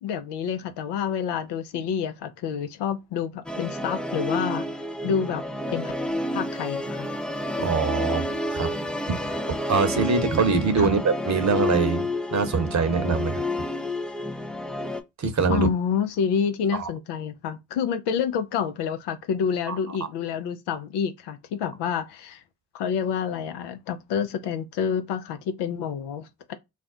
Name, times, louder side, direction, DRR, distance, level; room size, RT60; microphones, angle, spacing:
voice 1, 0.0-4.7 5.0-5.4 5.7-5.9 6.3-7.1 10.8-10.9 15.5-22.4 22.7-26.5, left 7 dB, 65° left, 0.6 m, -28 dB
Musical instrument, 3.5-15.0, left 1 dB, ahead, 0.4 m, -30 dB
voice 2, 7.6-8.7 9.2-9.4 9.7-13.4 15.2-15.7 16.7-16.9 19.7-19.8, right 4 dB, 40° right, 0.9 m, -24 dB
2.5 x 2.1 x 3.7 m
hypercardioid pair, 40°, 45 cm